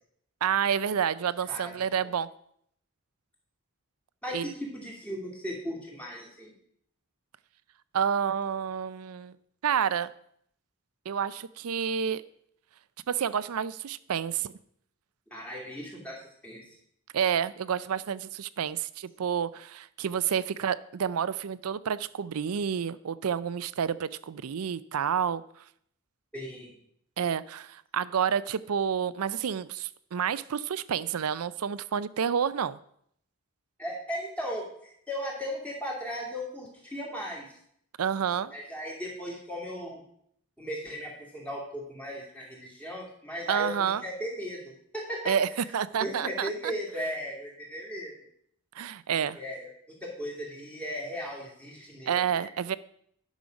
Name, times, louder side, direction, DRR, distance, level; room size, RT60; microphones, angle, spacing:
voice 1, 0.4-2.3 4.3-4.5 7.9-9.3 9.6-10.1 11.1-12.2 13.1-14.5 17.1-25.4 27.2-32.8 38.0-38.5 43.5-44.0 45.3-46.7 48.8-49.4 52.1-52.8, right 8 dB, 85° right, 17 dB, 0.4 m, -29 dB
voice 2, 1.5-1.8 4.2-6.5 15.3-16.1 16.4-16.6 26.3-26.7 33.8-37.5 38.5-40.0 40.6-44.6 44.9-45.3 46.0-48.1 49.4-49.7 50.0-52.5, equal, 5° left, -3 dB, 2.4 m, -37 dB
10.5 x 6.2 x 5.2 m, 0.69 s
head